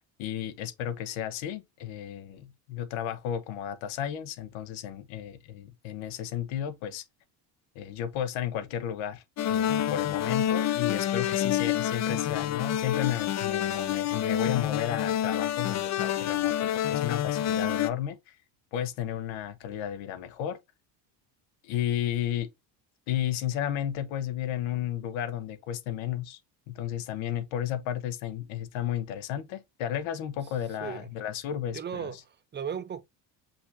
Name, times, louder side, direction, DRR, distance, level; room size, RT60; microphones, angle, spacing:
voice 1, 0.2-7.0 7.7-18.4 18.7-20.6 21.6-22.5 23.1-26.4 26.7-32.1, left 10 dB, 75° left, 1.2 m, -33 dB
sound 1, 9.4-17.9, left 11 dB, 35° left, 0.6 m, -28 dB
voice 2, 31.7-33.0, right 7 dB, 25° right, 0.5 m, -36 dB
5.4 x 2.7 x 3.4 m
supercardioid pair, 105°, 48 cm